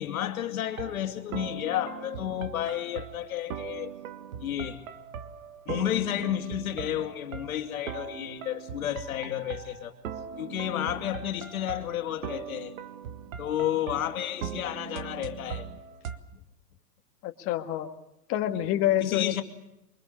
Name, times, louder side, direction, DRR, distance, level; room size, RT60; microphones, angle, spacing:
voice 1, 0.0-3.9 4.4-4.8 5.7-9.9 10.4-12.8 13.4-15.7 19.0-19.4, left 11 dB, 60° left, 2.7 m, -31 dB
sound 1, 0.7-16.2, right 7 dB, 55° right, 1.8 m, -40 dB
voice 2, 17.2-17.9 18.3-19.4, left 12 dB, 25° left, 1.8 m, -27 dB
24.5 x 23.0 x 7.1 m
hypercardioid pair, 135°, 48 cm